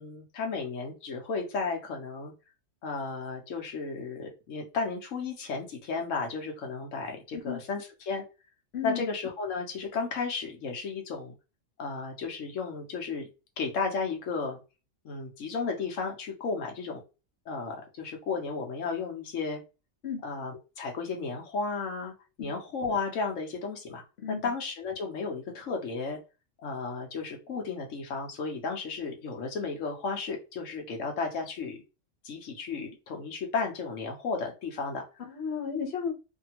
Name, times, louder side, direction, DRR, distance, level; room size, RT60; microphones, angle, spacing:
voice 1, 0.0-2.3 2.8-8.2 8.8-11.3 11.8-13.3 13.6-14.6 15.0-17.0 17.5-19.6 20.2-26.2 26.6-31.8 32.2-35.0, left 4 dB, 90° left, 2 dB, 1.2 m, -34 dB
voice 2, 35.2-36.1, left 7 dB, 60° left, 1 dB, 1.0 m, -33 dB
2.8 x 2.6 x 2.8 m, 0.30 s
omnidirectional pair, 1.3 m